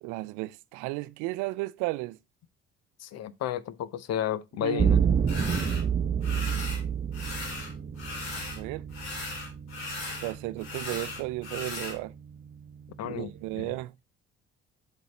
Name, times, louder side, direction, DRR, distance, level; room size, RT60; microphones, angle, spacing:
voice 1, 0.0-2.2 4.6-4.9 8.4-8.9 10.2-12.1 13.0-13.9, right 20 dB, 70° right, 0.5 m, -34 dB
voice 2, 3.0-5.0 13.0-13.3 13.6-13.7, left 10 dB, 55° left, 0.6 m, -32 dB
sound 1, 4.8-13.8, right 7 dB, 30° right, 0.7 m, -30 dB
sound 2, 5.3-5.8 6.2-6.8 7.1-8.6 8.9-12.0, left 3 dB, 80° left, 2.1 m, -38 dB
7.4 x 3.6 x 4.0 m
hypercardioid pair, 50°, 31 cm